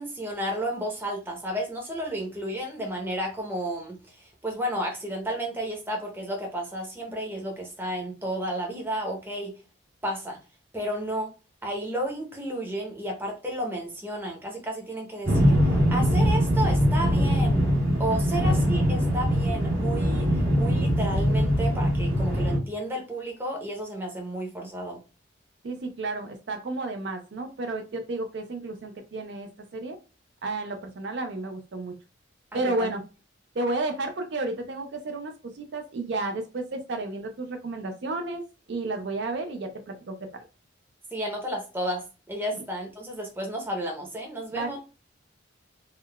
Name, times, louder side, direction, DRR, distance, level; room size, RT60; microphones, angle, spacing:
voice 1, 0.0-9.5 10.0-10.4 10.7-11.3 11.6-15.6 15.9-17.6 18.0-20.3 20.6-25.0 32.5-32.9 41.1-44.8, right 1 dB, 10° right, 0 dB, 0.6 m, -32 dB
sound 1, 15.3-22.6, equal, 85° right, 1.5 m, -22 dB
voice 2, 25.6-30.0 30.4-31.9 32.5-33.0 33.6-38.4 38.7-40.4 42.5-42.6 44.5-44.8, right 2 dB, 60° right, 5 dB, 0.4 m, -32 dB
3.6 x 2.2 x 2.2 m, 0.32 s
head